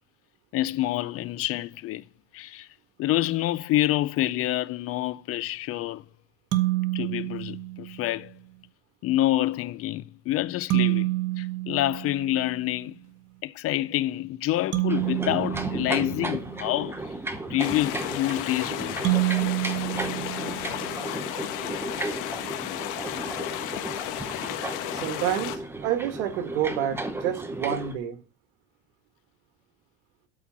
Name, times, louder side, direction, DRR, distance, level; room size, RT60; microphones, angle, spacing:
voice 1, 0.5-2.1 2.3-2.7 3.0-6.1 6.9-8.3 9.0-13.0 13.4-17.2 17.5-19.0, left 15 dB, 45° left, 0.5 m, -27 dB
sound 1, 6.5-8.2 10.7-12.7 14.7-16.9 19.0-21.1, right 18 dB, 45° right, 1.1 m, -28 dB
sound 2, 14.9-27.9, right 2 dB, 5° right, 0.9 m, -35 dB
sound 3, 17.6-25.6, left 13 dB, 65° left, 1.3 m, -34 dB
voice 2, 24.9-28.2, right 10 dB, 90° right, 1.6 m, -29 dB
12.5 x 4.4 x 7.3 m
cardioid pair, 140°, 34 cm